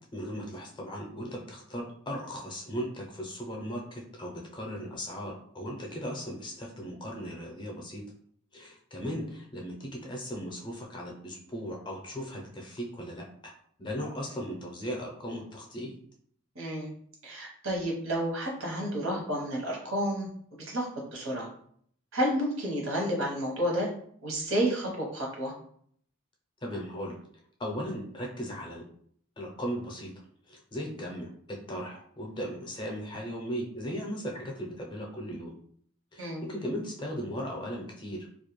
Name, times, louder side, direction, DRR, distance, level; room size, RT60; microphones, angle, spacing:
voice 1, 0.1-8.0 8.5-13.5 13.8-15.9 26.6-28.9 29.4-30.1 30.5-35.5 36.1-38.3, equal, 25° left, 0 dB, 0.5 m, -37 dB
voice 2, 16.5-16.9 17.2-20.3 20.7-20.9 21.1-21.5 22.1-23.9 24.2-25.5 36.2-36.4, equal, 85° right, -2 dB, 0.9 m, -30 dB
2.3 x 2.1 x 3.0 m, 0.62 s
head